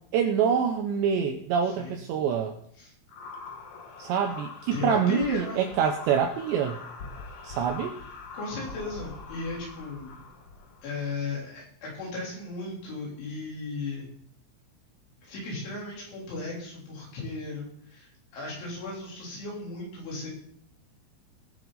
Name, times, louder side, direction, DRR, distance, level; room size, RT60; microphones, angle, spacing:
voice 1, 0.1-2.5 4.0-6.8 7.4-8.0, right 7 dB, 75° right, 4 dB, 2.7 m, -26 dB
sound 1, 3.1-11.1, left 4 dB, 90° left, 1.5 m, -43 dB
voice 2, 4.7-5.6 8.3-10.2 10.8-14.1 15.2-18.1 18.3-20.3, left 3 dB, 70° left, -4 dB, 5.9 m, -35 dB
19.5 x 7.3 x 4.0 m, 0.65 s
omnidirectional pair, 5.7 m